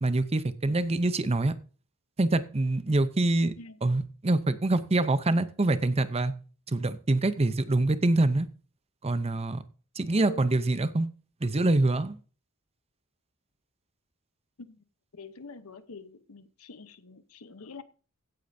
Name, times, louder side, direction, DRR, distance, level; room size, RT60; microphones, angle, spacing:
voice 1, 0.0-1.6 2.2-3.5 3.8-6.3 6.7-8.5 9.0-9.6 10.0-11.1 11.4-12.2, right 2 dB, 30° right, 0.7 m, -25 dB
voice 2, 15.1-17.8, left 3 dB, 70° left, 0.9 m, -45 dB
16.0 x 8.5 x 2.7 m
head